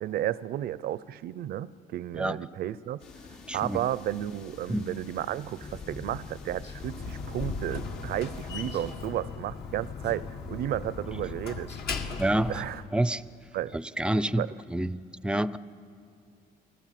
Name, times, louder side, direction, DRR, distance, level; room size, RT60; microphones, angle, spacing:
voice 1, 0.0-3.0 3.5-11.7 12.5-12.8 13.5-13.8 14.4-14.5, right 12 dB, 65° right, 0.6 m, -33 dB
sound 1, 3.0-8.9, left 4 dB, 85° left, 4.0 m, -49 dB
voice 2, 3.5-3.8 4.7-4.9 12.2-13.2 13.7-15.6, right 1 dB, 5° right, 0.5 m, -28 dB
sound 2, 5.6-12.6, left 5 dB, 35° left, 1.9 m, -44 dB
Slam, 6.7-12.9, left 4 dB, 65° left, 2.0 m, -38 dB
29.5 x 19.0 x 7.6 m
cardioid pair, 110°, 17 cm